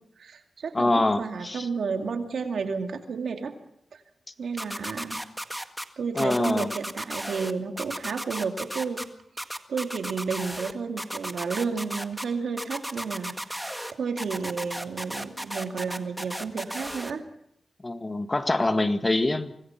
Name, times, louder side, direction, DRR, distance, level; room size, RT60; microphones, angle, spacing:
voice 1, 0.2-3.5 3.9-4.0 4.4-5.2 6.0-9.0 9.7-13.7 14.0-17.2, right 5 dB, 85° right, 5 dB, 2.4 m, -31 dB
voice 2, 0.7-1.7 6.1-6.7 17.8-19.5, left 2 dB, 30° left, 8 dB, 1.8 m, -25 dB
sound 1, 4.6-5.8 6.2-7.5 7.8-9.0 9.4-10.7 11.0-12.2 12.6-13.9 14.2-17.1, equal, 5° right, 1.7 m, -34 dB
25.5 x 19.0 x 6.0 m, 0.75 s
cardioid pair, 60°, 0 cm